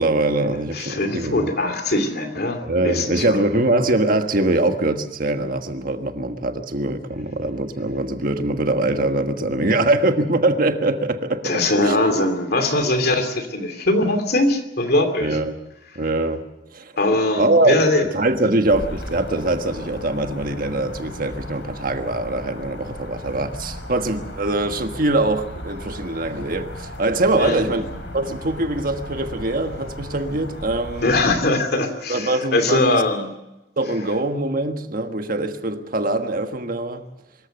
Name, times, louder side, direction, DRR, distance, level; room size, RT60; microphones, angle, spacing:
voice 1, 0.0-1.5 2.6-12.0 15.2-15.6 15.9-16.4 16.7-16.9 17.4-17.7 18.1-27.9 28.1-31.1 32.1-33.0 33.8-37.0, right 2 dB, 50° right, 7 dB, 1.4 m, -22 dB
voice 2, 0.7-3.4 11.4-15.4 17.0-18.1 27.4-27.7 31.0-33.3, left 2 dB, 60° left, 7 dB, 2.8 m, -21 dB
sound 1, 18.6-31.4, left 1 dB, 85° left, 4.2 m, -36 dB
24.0 x 14.0 x 8.0 m, 0.95 s
head